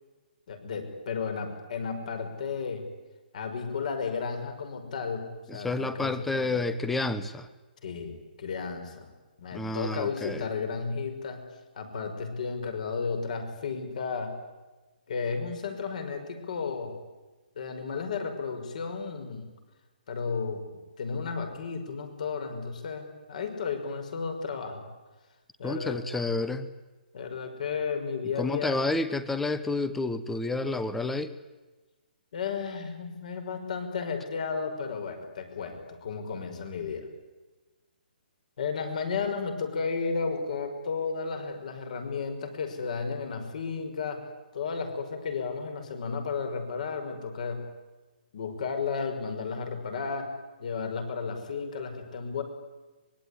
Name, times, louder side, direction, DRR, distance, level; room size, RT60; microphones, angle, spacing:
voice 1, 0.5-2.8 3.3-6.6 7.8-9.1 9.4-11.4 11.8-14.3 15.1-16.9 17.6-19.5 20.1-20.6 21.0-24.9 25.6-26.0 27.1-28.8 32.3-37.1 38.6-44.2 44.5-47.6 48.3-50.3 50.6-52.4, left 5 dB, 45° left, 7 dB, 5.4 m, -33 dB
voice 2, 5.5-7.5 9.5-10.4 25.6-26.7 28.4-31.3, left 2 dB, 5° left, 13 dB, 0.9 m, -30 dB
25.0 x 22.5 x 9.9 m, 1.2 s
hypercardioid pair, 170°, 5 cm